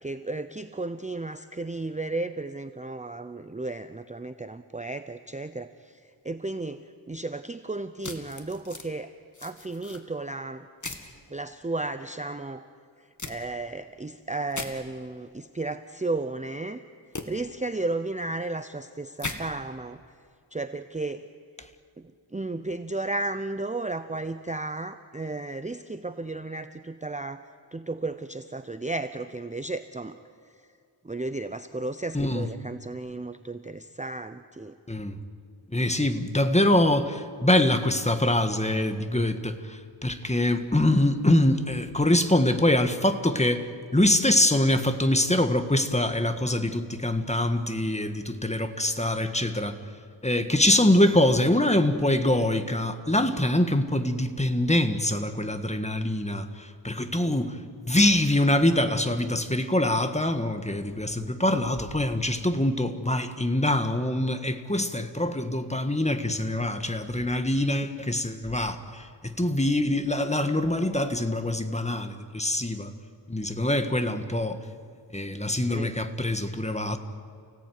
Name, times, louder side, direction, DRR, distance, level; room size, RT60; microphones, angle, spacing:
voice 1, 0.0-9.1 9.4-10.7 11.3-12.7 13.0-16.8 17.3-20.0 20.5-21.3 22.0-30.2 31.0-34.8 75.7-76.0, right 2 dB, 15° right, 11 dB, 0.7 m, -34 dB
sound 1, 8.0-8.9 9.3-10.0 10.8-11.1 13.2-13.3 14.5-14.7 17.1-17.2 19.2-19.4, left 3 dB, 40° left, 2.2 m, -36 dB
voice 2, 32.1-32.5 34.9-35.2 35.7-49.8 50.2-57.6 57.8-72.9 73.3-74.6 75.1-77.0, left 1 dB, 15° left, 8 dB, 1.7 m, -24 dB
29.5 x 17.5 x 9.5 m, 2.2 s
wide cardioid pair, 75°, 45 cm